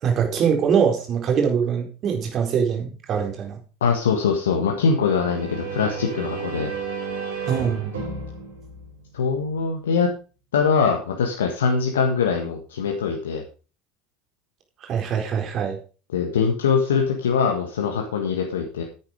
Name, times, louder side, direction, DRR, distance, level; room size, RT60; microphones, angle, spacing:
voice 1, 0.0-3.6 7.5-7.9 14.8-15.8, right 7 dB, 45° right, 2 dB, 4.2 m, -23 dB
voice 2, 3.8-6.7 9.1-10.1 10.5-13.4 16.1-18.8, left 5 dB, 75° left, 2 dB, 1.7 m, -22 dB
sound 1, 4.9-9.6, right 5 dB, 80° right, 5.8 m, -33 dB
10.5 x 9.2 x 5.1 m, 0.37 s
hypercardioid pair, 75°, 0 cm